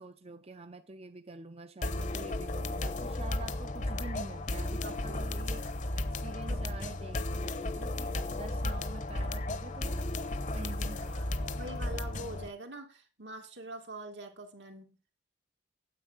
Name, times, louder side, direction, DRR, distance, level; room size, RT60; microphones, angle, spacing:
voice 1, 0.0-5.6 5.9-10.0 10.5-11.7, right 3 dB, 35° right, 0.6 m, -47 dB
sound 1, 1.8-12.5, left 2 dB, 45° left, 0.9 m, -34 dB
voice 2, 4.8-5.3 6.5-6.6 11.1-15.0, right 2 dB, 80° right, 2.4 m, -45 dB
10.0 x 7.8 x 6.4 m
head